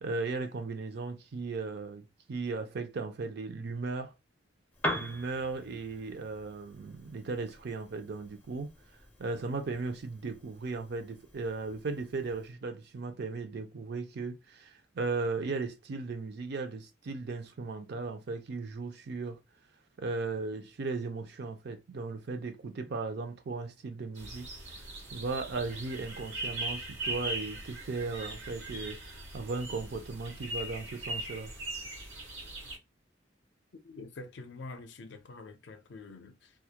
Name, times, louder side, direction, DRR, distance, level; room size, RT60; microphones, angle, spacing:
voice 1, 0.0-4.1 4.9-8.7 9.2-19.4 20.0-24.5 25.1-31.5, right 3 dB, 60° right, 0.5 m, -36 dB
Piano, 4.7-12.5, equal, 10° left, 0.5 m, -43 dB
sound 1, 24.2-32.8, right 1 dB, 85° right, 1.0 m, -40 dB
voice 2, 33.8-36.5, left 3 dB, 65° left, 0.5 m, -46 dB
2.3 x 2.1 x 2.7 m
head